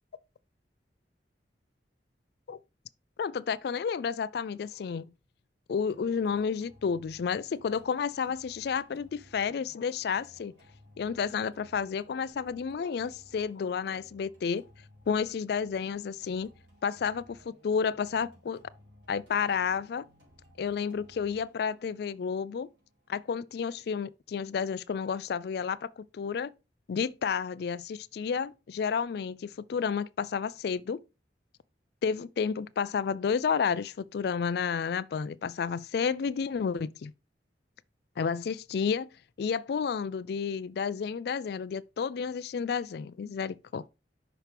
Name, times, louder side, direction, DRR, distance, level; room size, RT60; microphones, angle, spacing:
voice 1, 3.2-5.1 5.7-10.5 11.0-14.6 15.1-16.5 16.8-18.6 19.1-20.0 20.6-22.7 23.1-26.5 26.9-31.0 32.0-37.1 38.2-39.1 39.4-43.8, left 6 dB, 65° left, 0.3 m, -31 dB
sound 1, 5.9-23.9, equal, 90° right, 4.3 m, -59 dB
5.9 x 5.8 x 3.4 m
head